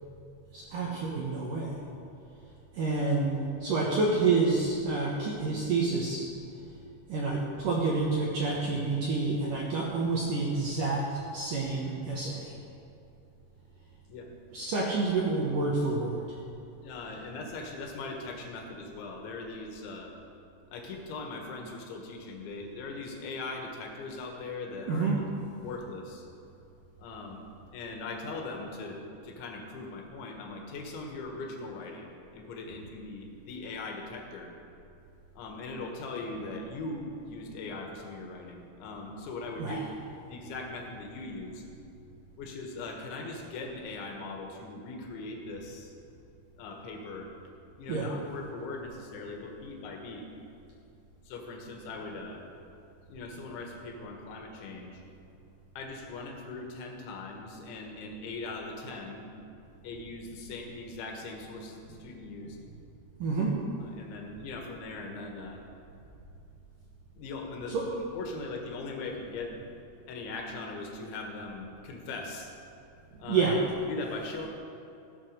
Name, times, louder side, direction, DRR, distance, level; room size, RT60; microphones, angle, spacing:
voice 1, 0.5-1.8 2.7-6.2 7.1-12.5 14.5-16.4 24.9-25.2 39.6-39.8 47.9-48.1 63.2-63.6 67.7-67.9 73.3-73.6, right 3 dB, 70° right, -3 dB, 2.0 m, -28 dB
voice 2, 16.8-20.2 20.7-25.1 25.6-26.3 27.0-27.4 27.7-34.5 35.4-39.8 40.2-41.6 42.4-45.9 46.6-47.3 47.8-50.3 51.3-52.4 53.1-55.0 55.8-59.3 59.8-62.6 63.8-65.6 67.2-69.5 70.1-72.5 73.2-73.5 73.9-74.5, left 3 dB, 80° left, 1 dB, 3.8 m, -40 dB
15.5 x 8.1 x 6.6 m, 2.6 s
omnidirectional pair, 5.4 m